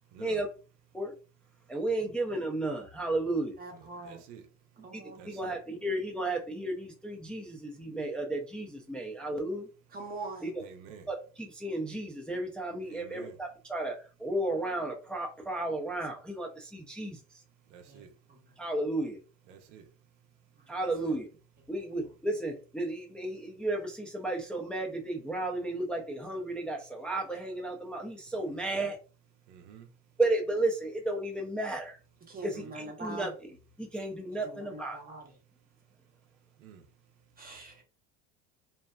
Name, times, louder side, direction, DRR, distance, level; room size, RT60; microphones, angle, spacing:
voice 1, 0.1-0.4 2.0-2.1 3.7-4.4 5.2-5.6 10.6-11.1 12.8-13.4 17.7-18.1 19.5-19.8 20.8-21.2 28.5-28.9 29.5-29.9 32.4-32.7 36.6-36.8, right 8 dB, 70° right, 0.6 m, -50 dB
voice 2, 1.7-3.6 4.9-9.7 10.4-10.6 11.1-17.2 18.6-19.2 20.7-21.3 21.7-29.0 30.2-32.0 32.4-35.0, right 2 dB, 5° left, 0.4 m, -33 dB
voice 3, 3.6-4.2 4.8-5.3 9.9-10.5 17.9-18.0 32.3-33.3 34.4-35.2 37.4-37.8, right 3 dB, 25° right, 0.7 m, -43 dB
2.6 x 2.1 x 2.3 m
supercardioid pair, 105°, 36 cm